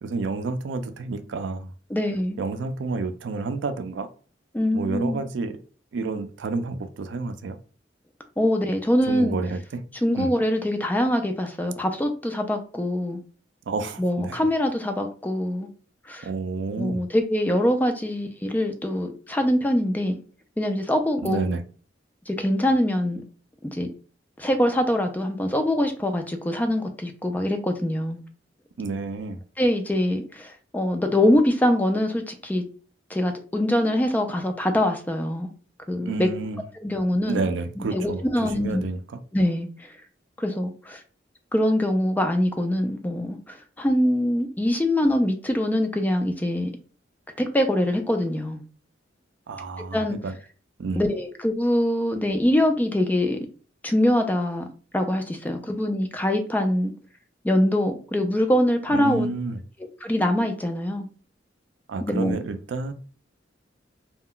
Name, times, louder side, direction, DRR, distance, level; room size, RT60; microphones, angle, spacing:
voice 1, 0.0-1.7 2.4-4.1 4.7-5.6 5.9-7.6 9.1-9.8 10.2-10.3 13.7-14.4 16.2-17.0 21.2-21.6 28.8-29.4 36.0-36.6 37.3-38.2 38.5-39.2 49.5-50.4 50.8-51.0 58.9-59.6 61.9-62.9, right 3 dB, 70° right, 0.4 m, -29 dB
voice 2, 1.9-2.4 4.5-5.2 8.4-9.4 10.0-13.2 14.0-15.7 16.1-16.3 16.8-20.2 20.6-21.4 22.3-23.2 23.6-23.9 24.4-28.2 29.6-32.6 33.1-35.5 35.9-36.3 36.8-37.5 37.8-38.8 39.3-39.9 40.4-41.0 41.5-46.7 47.4-48.6 49.9-50.2 51.0-53.5 53.8-54.7 54.9-56.9 57.4-59.3 60.0-61.1 62.0-62.4, left 1 dB, 10° left, 0.3 m, -23 dB
2.2 x 2.1 x 3.7 m
head